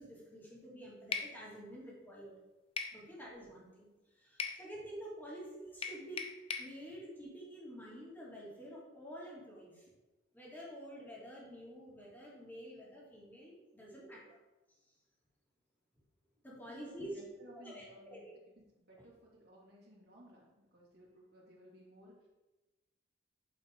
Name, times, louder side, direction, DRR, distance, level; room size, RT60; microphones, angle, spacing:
voice 1, 0.0-2.3 2.9-6.3 6.6-9.9 10.3-14.2 16.4-17.2 17.5-18.3, equal, 10° left, -6 dB, 2.9 m, -49 dB
sound 1, 1.1-1.3 2.8-3.0 4.4-4.6 5.8-6.7, left 5 dB, 30° left, 0.7 m, -38 dB
voice 2, 16.6-18.3 18.6-22.1, equal, 55° right, -6 dB, 2.9 m, -58 dB
8.5 x 7.4 x 3.9 m, 1.1 s
head